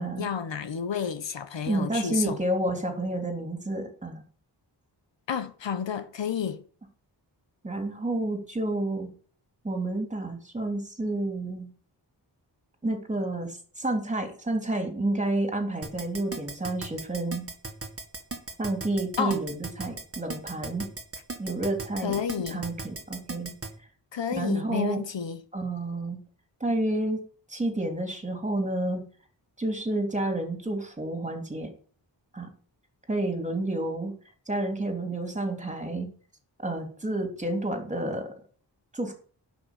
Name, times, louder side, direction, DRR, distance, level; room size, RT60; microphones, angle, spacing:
voice 1, 0.0-2.4 5.3-6.6 19.2-19.4 22.0-22.6 24.1-25.4, left 7 dB, 90° left, 1.3 m, -31 dB
voice 2, 1.7-4.2 7.6-9.1 9.6-11.7 12.8-17.5 18.6-20.9 21.4-22.2 22.5-23.5 24.3-25.0 25.5-26.2 26.6-27.2 27.5-29.0 29.6-31.7 32.3-32.5 33.1-34.1 34.5-36.1 36.6-38.3 38.9-39.1, right 2 dB, 15° right, 3.3 m, -30 dB
Keyboard (musical), 15.8-23.7, right 3 dB, 30° right, 2.0 m, -36 dB
11.5 x 6.0 x 9.2 m
wide cardioid pair, 135°, 43 cm